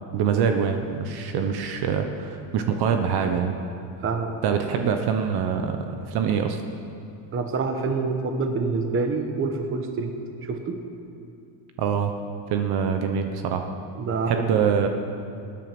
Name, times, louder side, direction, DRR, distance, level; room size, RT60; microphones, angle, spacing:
voice 1, 0.1-3.6 4.4-6.6 11.8-12.1 12.5-13.7 14.3-14.9, right 7 dB, 50° right, 5 dB, 1.1 m, -24 dB
voice 2, 4.0-4.4 7.3-10.1 10.4-10.8 14.0-14.6, right 4 dB, 25° right, 5 dB, 1.2 m, -27 dB
20.0 x 9.6 x 6.1 m, 2.5 s
cardioid pair, 155°, 49 cm